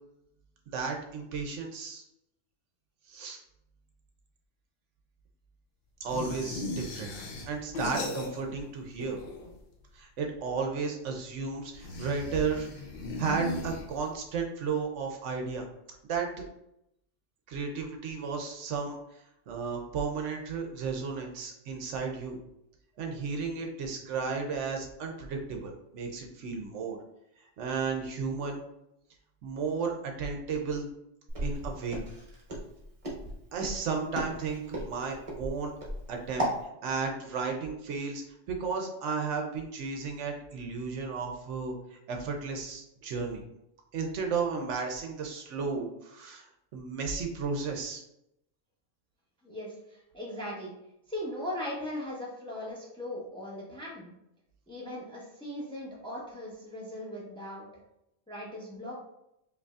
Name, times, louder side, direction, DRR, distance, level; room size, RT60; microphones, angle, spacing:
voice 1, 0.7-2.0 3.1-3.4 6.0-7.1 7.5-9.2 9.9-12.7 13.2-15.7 16.1-16.3 17.5-19.0 19.5-22.4 23.0-27.0 27.6-28.6 29.4-30.9 31.4-32.0 33.5-35.7 36.1-36.5 36.8-43.4 43.9-46.5 46.7-48.0, right 5 dB, 70° right, 2 dB, 0.9 m, -33 dB
sound 1, 6.1-8.7 8.9-9.7 11.7-14.3, left 2 dB, 55° left, 0.7 m, -37 dB
Walk footsteps, 31.3-36.6, equal, 30° right, 0.9 m, -35 dB
voice 2, 49.4-50.7 51.1-54.1 54.7-57.7 58.3-58.9, left 1 dB, 5° left, -4 dB, 0.7 m, -39 dB
5.0 x 2.6 x 2.3 m, 0.82 s
omnidirectional pair, 1.3 m